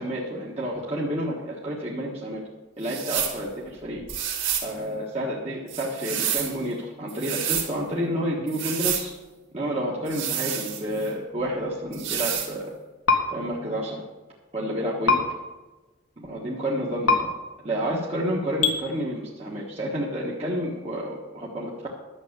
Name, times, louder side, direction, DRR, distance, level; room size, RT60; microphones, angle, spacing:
voice 1, 0.0-2.4 2.8-4.0 4.6-9.1 9.5-12.7 13.3-14.0 14.5-15.2 16.2-17.3 17.6-21.9, equal, 30° right, -4 dB, 1.4 m, -30 dB
sound 1, 2.8-3.4 4.1-4.7 5.7-6.6 7.1-7.7 8.5-9.1 10.1-11.1 11.9-12.5, right 9 dB, 60° right, 2.2 m, -29 dB
sound 2, 13.1-13.2 15.1-15.2 17.1-17.2 18.6-18.8, left 4 dB, 80° left, 1.7 m, -19 dB
11.5 x 7.7 x 6.7 m, 1.2 s
head